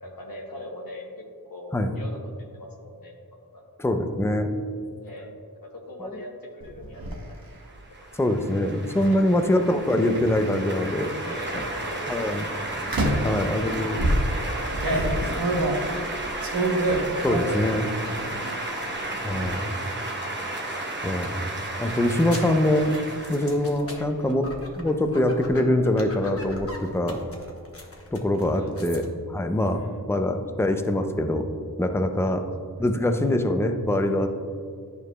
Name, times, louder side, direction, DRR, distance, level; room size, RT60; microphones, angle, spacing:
voice 1, 0.0-1.2 1.5-2.2 2.5-3.1 3.5-3.6 5.0-7.0 7.3-7.6 8.0-8.1 9.1-9.4 11.2-12.5 13.2-16.3 23.8-24.1 28.5-29.0 29.7-30.2 32.2-32.5 32.8-32.9, left 1 dB, 65° left, -1 dB, 0.9 m, -41 dB
voice 2, 3.8-4.5 6.1-6.2 8.2-11.1 11.5-11.7 12.1-12.5 13.2-14.0 17.2-17.9 19.2-19.8 21.0-21.5 21.8-22.9 23.3-24.5 24.8-27.2 28.1-29.0 29.3-31.5 31.8-32.4 32.8-34.3, left 1 dB, 5° left, 6 dB, 0.5 m, -24 dB
sound 1, 6.6-7.2 8.9-9.1 9.9-10.7 11.5-11.8 12.9-13.4 14.0-17.7 18.1-18.6 18.9-19.5, right 1 dB, 65° right, 1.0 m, -26 dB
sound 2, 7.6-24.3, right 2 dB, 30° right, 0.8 m, -33 dB
sound 3, 21.7-29.1, left 1 dB, 40° left, 0.9 m, -41 dB
10.5 x 4.7 x 2.2 m, 2.2 s
wide cardioid pair, 50°, 37 cm